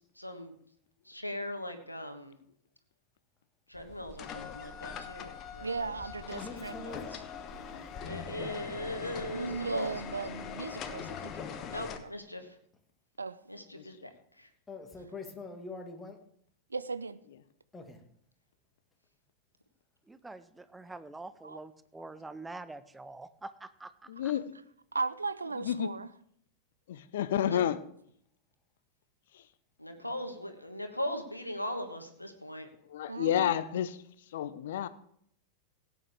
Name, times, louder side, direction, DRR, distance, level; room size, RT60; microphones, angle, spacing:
voice 1, 0.2-0.5 1.1-2.4 3.7-6.0 7.6-9.9 11.7-12.5 13.5-14.1 14.4-14.5 27.3-27.7 29.8-32.7, equal, 85° left, 1.4 m, -39 dB
sound 1, 3.7-12.0, left 7 dB, 35° left, 1.2 m, -42 dB
voice 2, 5.6-7.2 9.3-11.3 12.0-12.1 13.2-13.4 16.7-17.2 21.4-21.6 24.9-26.1 33.1-33.6, right 4 dB, 80° right, 0.6 m, -37 dB
voice 3, 6.3-7.2 14.7-16.2 17.7-18.0, left 3 dB, 15° left, 1.9 m, -44 dB
voice 4, 20.1-24.3, right 2 dB, 10° right, 0.7 m, -46 dB
voice 5, 24.1-24.4 25.6-25.9 26.9-27.8 32.9-33.9 34.3-34.9, left 10 dB, 60° left, 0.8 m, -30 dB
17.0 x 9.2 x 3.6 m
figure-of-eight pair, 90°, 0 cm